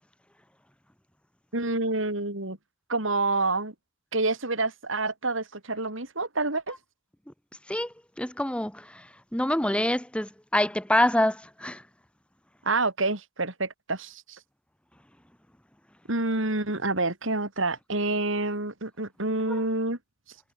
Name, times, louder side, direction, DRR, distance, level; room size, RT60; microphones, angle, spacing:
voice 1, 1.5-2.6 2.9-3.7 4.1-6.8 12.6-14.4 16.1-20.0, right 2 dB, 65° right, 3.7 m, -28 dB
voice 2, 7.7-11.8, left 1 dB, 5° left, 1.3 m, -26 dB
head